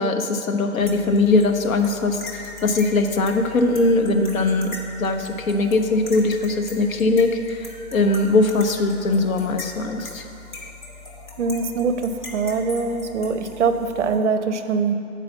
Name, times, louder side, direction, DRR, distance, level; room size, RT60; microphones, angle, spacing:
voice 1, 0.0-10.2, left 2 dB, 70° left, 6 dB, 0.8 m, -21 dB
sound 1, 0.8-14.2, left 3 dB, 35° left, 0.7 m, -40 dB
voice 2, 11.4-14.9, right 4 dB, 55° right, 9 dB, 0.5 m, -23 dB
6.7 x 4.8 x 6.9 m, 2.6 s
hypercardioid pair, 175°, 43 cm